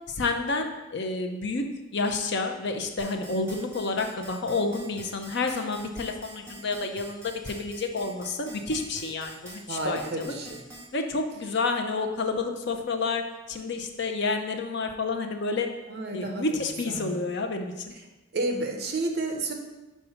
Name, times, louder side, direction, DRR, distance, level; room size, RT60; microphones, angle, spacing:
voice 1, 0.1-1.6 1.9-10.3 10.9-13.2 13.5-15.7 16.1-17.7, left 3 dB, 55° left, 5 dB, 0.7 m, -29 dB
sound 1, 3.0-10.9, right 1 dB, 15° right, 2.4 m, -45 dB
voice 2, 9.7-10.6 15.9-16.5 16.9-17.3 18.3-19.5, right 2 dB, 50° right, 3 dB, 0.9 m, -31 dB
5.4 x 4.7 x 5.7 m, 1.1 s
head